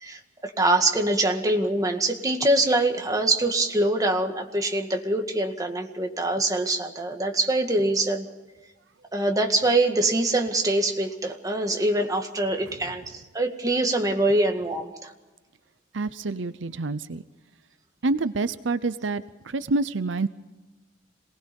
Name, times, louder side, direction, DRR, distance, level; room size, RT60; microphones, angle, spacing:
voice 1, 0.0-8.3 9.1-15.1, right 2 dB, 20° right, 4 dB, 2.0 m, -24 dB
voice 2, 15.9-17.2 18.0-20.3, right 3 dB, 75° right, 14 dB, 0.7 m, -28 dB
27.5 x 19.5 x 5.4 m, 1.2 s
head